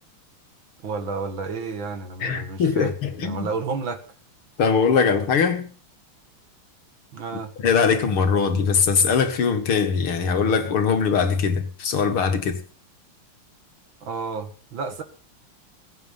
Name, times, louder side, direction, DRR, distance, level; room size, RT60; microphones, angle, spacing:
voice 1, 0.8-3.0 3.2-4.0 7.1-7.5 14.0-15.0, right 4 dB, 65° right, 2.5 m, -31 dB
voice 2, 2.2-3.5 4.6-5.7 7.6-12.6, left 6 dB, 75° left, 2.8 m, -21 dB
21.0 x 9.2 x 5.7 m
omnidirectional pair, 2.4 m